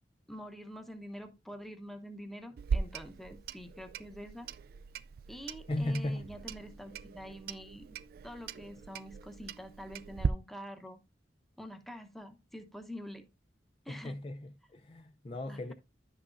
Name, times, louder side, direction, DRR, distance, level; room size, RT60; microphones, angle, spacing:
voice 1, 0.3-4.5 5.3-8.0 8.2-11.0 11.6-13.2 13.8-14.2 15.5-15.7, equal, ahead, 0.9 m, -46 dB
Clock, 2.6-10.3, right 5 dB, 55° right, 0.3 m, -39 dB
voice 2, 5.7-6.2 13.9-15.7, left 1 dB, 30° left, 0.4 m, -36 dB
11.0 x 6.1 x 2.5 m
head